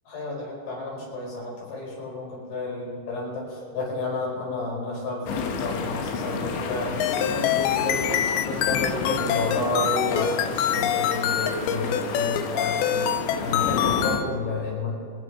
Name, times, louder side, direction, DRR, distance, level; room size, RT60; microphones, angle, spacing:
voice 1, 0.1-8.0 8.5-13.1 13.4-14.9, left 2 dB, 55° left, -3 dB, 6.7 m, -31 dB
sound 1, 5.3-14.2, left 5 dB, 75° left, 3.4 m, -31 dB
sound 2, 7.0-14.3, left 10 dB, 90° left, 2.1 m, -25 dB
26.0 x 10.0 x 4.8 m, 2.4 s
omnidirectional pair, 5.4 m